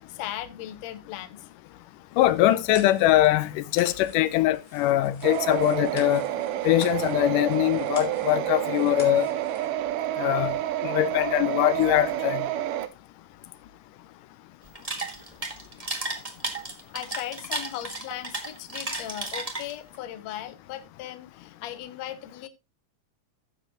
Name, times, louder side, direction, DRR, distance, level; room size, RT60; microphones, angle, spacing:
voice 1, 0.1-1.5 16.9-22.5, left 12 dB, 65° left, 2.0 m, -37 dB
sound 1, 2.1-9.7, left 1 dB, 15° left, 2.7 m, -48 dB
voice 2, 2.2-6.3 6.6-9.3 10.2-10.6 10.8-12.5, left 14 dB, 80° left, 2.2 m, -22 dB
sound 2, 5.2-12.9, right 12 dB, 85° right, 2.4 m, -29 dB
sound 3, 14.6-20.0, right 2 dB, 25° right, 0.8 m, -33 dB
14.5 x 7.4 x 3.0 m
omnidirectional pair, 3.7 m